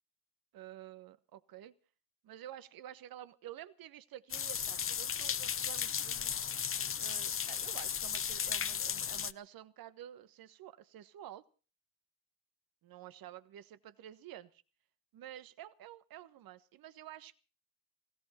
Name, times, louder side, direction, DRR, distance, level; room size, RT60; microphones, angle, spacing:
voice 1, 0.5-1.8 2.2-6.3 7.0-11.4 12.8-14.6 15.1-17.4, right 11 dB, 60° right, 15 dB, 1.3 m, -50 dB
sound 1, 4.3-9.3, left 8 dB, 35° left, 0.8 m, -35 dB
20.0 x 16.5 x 4.4 m, 0.37 s
hypercardioid pair, 55°, 39 cm